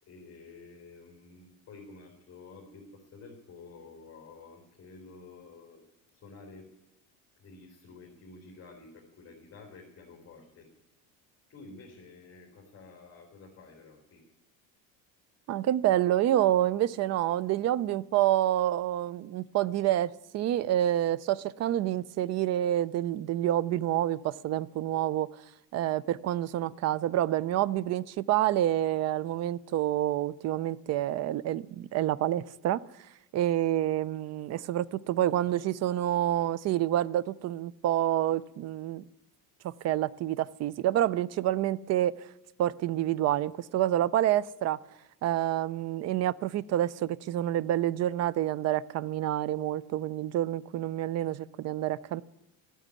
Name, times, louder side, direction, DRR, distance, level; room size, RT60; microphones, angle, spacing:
voice 1, 0.0-5.8 6.1-6.7 7.4-10.7 11.5-14.2 35.5-35.6, left 3 dB, 30° left, 3.7 m, -51 dB
voice 2, 15.5-25.4 25.7-32.8 33.3-39.0 39.6-42.3 42.6-44.8 45.2-52.2, right 13 dB, 40° right, 0.5 m, -28 dB
14.0 x 9.1 x 9.7 m
cardioid pair, 140°, 40 cm